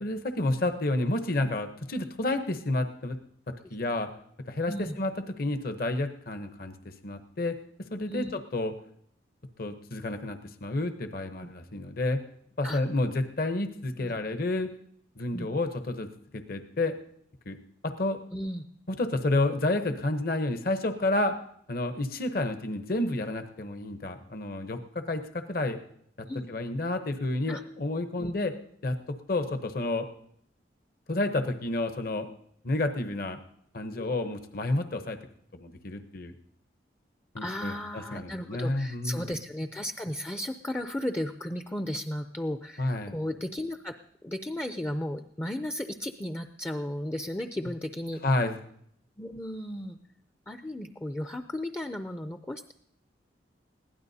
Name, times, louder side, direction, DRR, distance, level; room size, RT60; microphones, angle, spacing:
voice 1, 0.0-3.2 3.7-4.1 4.5-6.7 7.0-7.6 7.9-8.7 9.6-12.2 12.6-14.7 15.2-16.1 16.3-17.0 17.5-17.6 17.8-18.2 18.9-21.3 21.7-25.8 26.5-28.5 28.8-30.1 31.1-32.3 32.6-33.4 33.7-35.2 35.5-36.3 37.3-39.4 42.8-43.1 48.2-48.6, left 2 dB, 50° left, 8 dB, 0.9 m, -30 dB
voice 2, 18.3-18.6 26.3-26.5 27.5-27.6 28.2-28.3 33.9-34.1 37.4-44.0 44.2-48.2 49.2-50.0 50.5-52.7, left 1 dB, 15° left, 8 dB, 0.5 m, -35 dB
21.5 x 16.0 x 2.7 m, 0.67 s
head